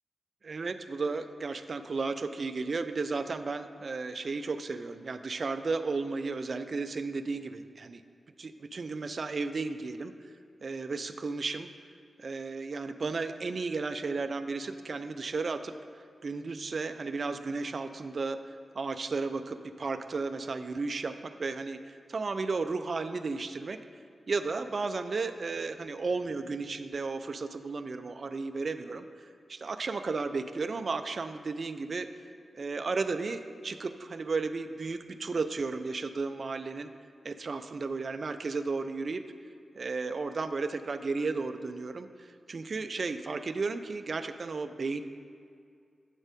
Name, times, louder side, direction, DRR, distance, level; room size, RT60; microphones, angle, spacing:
voice 1, 0.4-8.0 8.4-10.1 10.6-11.7 12.2-15.7 16.2-23.8 24.3-29.1 29.5-32.1 32.5-36.9 37.2-39.2 39.7-45.0, right 4 dB, 55° right, 10 dB, 0.4 m, -34 dB
8.0 x 4.3 x 5.1 m, 2.3 s
cardioid pair, 60°, 0 cm